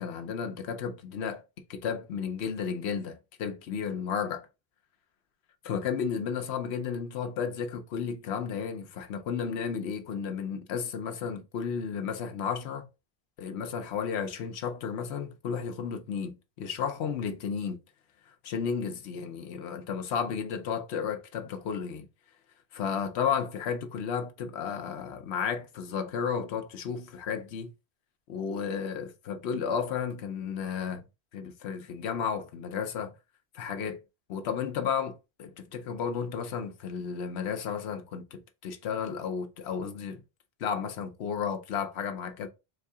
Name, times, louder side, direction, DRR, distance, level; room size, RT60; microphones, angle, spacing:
voice 1, 0.0-1.4 1.7-4.5 5.6-12.9 13.4-17.8 18.4-22.1 22.7-27.7 28.3-31.0 31.3-33.1 33.5-34.0 34.3-40.2 40.6-42.5, left 7 dB, 90° left, 0.9 m, -33 dB
4.0 x 2.7 x 3.5 m
omnidirectional pair, 1.1 m